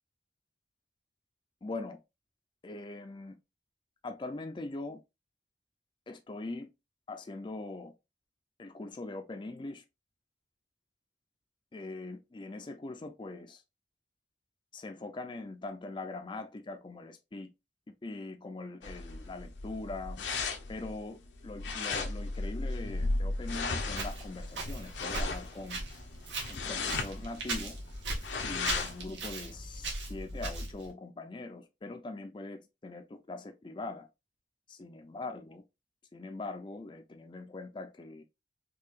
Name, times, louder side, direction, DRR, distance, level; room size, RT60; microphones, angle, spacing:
voice 1, 1.6-2.0 2.6-3.4 4.0-5.0 6.1-6.7 7.1-7.9 8.6-9.8 11.7-13.6 14.7-17.5 18.0-20.2 20.7-26.0 26.5-27.8 28.4-34.1 34.7-35.6 36.1-38.2, left 2 dB, 25° left, 0.4 m, -42 dB
sound 1, 18.8-29.0, left 3 dB, 80° left, 0.7 m, -36 dB
Walk footsteps, 23.9-30.9, right 2 dB, 90° right, 1.4 m, -39 dB
4.6 x 2.7 x 2.4 m
head